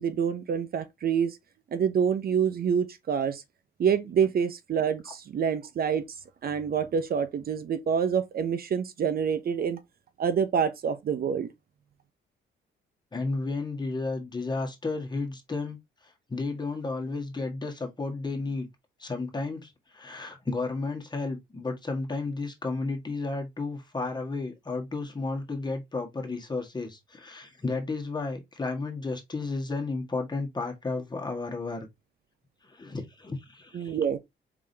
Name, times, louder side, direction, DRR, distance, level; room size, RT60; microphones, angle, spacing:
voice 1, 0.0-1.4 1.7-3.4 3.8-6.0 6.4-9.8 10.2-11.5 33.7-34.2, right 7 dB, 50° right, 0.7 m, -27 dB
voice 2, 13.1-18.7 19.0-31.9 32.7-34.0, left 3 dB, 20° left, 1.6 m, -33 dB
4.8 x 3.6 x 2.7 m
cardioid pair, 90°, 20 cm